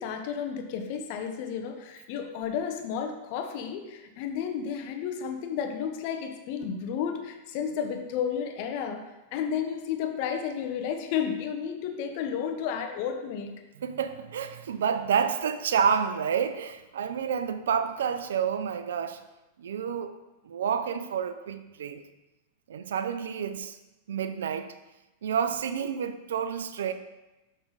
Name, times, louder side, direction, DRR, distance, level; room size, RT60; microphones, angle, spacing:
voice 1, 0.0-9.0 9.3-13.5, left 7 dB, 55° left, 5 dB, 1.0 m, -32 dB
voice 2, 13.8-19.2 19.6-20.2 20.4-22.0 22.7-23.8 24.1-24.8 25.2-26.9, right 7 dB, 85° right, 11 dB, 0.6 m, -29 dB
6.4 x 6.0 x 4.0 m, 1.0 s
hypercardioid pair, 115°, 0 cm